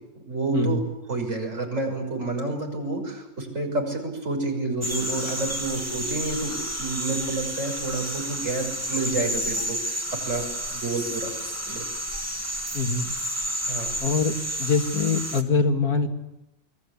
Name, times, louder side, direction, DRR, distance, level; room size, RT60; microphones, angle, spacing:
voice 1, 0.1-0.8 1.1-11.3 11.7-11.8 13.7-13.9, right 2 dB, 55° right, 2 dB, 6.7 m, -29 dB
sound 1, 4.8-15.4, equal, 10° right, 2.3 m, -31 dB
voice 2, 12.7-13.1 14.0-14.3 14.6-16.1, left 4 dB, 90° left, 4 dB, 2.7 m, -23 dB
28.5 x 22.0 x 8.5 m, 0.90 s
omnidirectional pair, 1.5 m